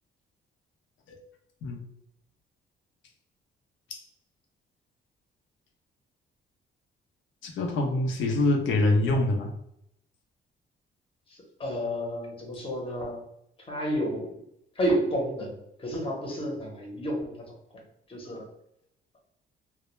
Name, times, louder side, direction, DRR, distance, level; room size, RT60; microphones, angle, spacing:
voice 1, 7.4-9.5, left 2 dB, 75° left, 2 dB, 0.6 m, -25 dB
voice 2, 11.6-13.2 13.7-14.3 14.8-17.4 18.1-18.5, equal, 25° left, -1 dB, 0.8 m, -30 dB
2.2 x 2.1 x 3.0 m, 0.78 s
cardioid pair, 90°, 20 cm